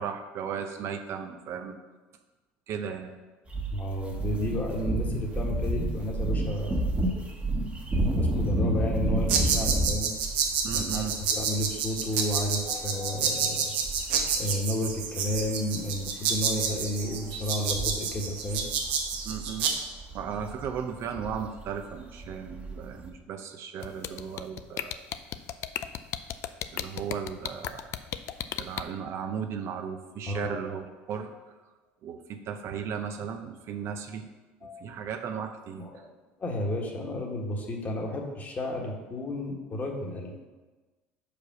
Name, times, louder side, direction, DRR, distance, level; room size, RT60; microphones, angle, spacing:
voice 1, 0.0-1.8 2.7-3.1 10.6-11.1 19.2-19.7 20.1-25.0 26.7-28.0 28.6-31.5 32.0-34.3 34.8-35.9, right 7 dB, 55° right, 6 dB, 0.7 m, -36 dB
sound 1, 3.5-14.6 14.8-15.0 15.3-23.1, right 1 dB, 25° right, 1.3 m, -31 dB
voice 2, 3.7-6.8 8.2-10.1 10.7-13.7 14.4-18.7 30.3-30.6 34.6-34.8 35.8-36.1 36.4-40.3, left 1 dB, 35° left, 0 dB, 1.6 m, -32 dB
sound 2, 9.3-19.7, right 6 dB, 85° right, 1.0 m, -29 dB
sound 3, 23.8-28.8, left 11 dB, 60° left, 0.4 m, -33 dB
5.1 x 4.7 x 6.2 m, 1.2 s
supercardioid pair, 90°, 5 cm